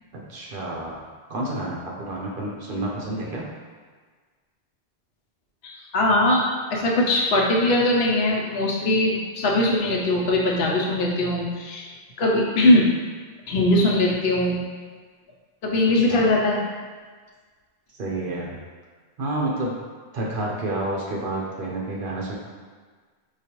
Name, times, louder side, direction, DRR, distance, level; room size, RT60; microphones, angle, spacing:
voice 1, 0.1-1.0 1.3-3.4 16.0-16.3 17.9-18.6 19.2-19.7 20.1-22.3, right 2 dB, 60° right, -3 dB, 0.8 m, -29 dB
voice 2, 5.6-11.9 12.2-12.9 13.5-14.6 15.6-16.6, left 1 dB, 80° left, -2 dB, 0.9 m, -21 dB
4.7 x 2.3 x 2.9 m, 1.5 s
omnidirectional pair, 1.1 m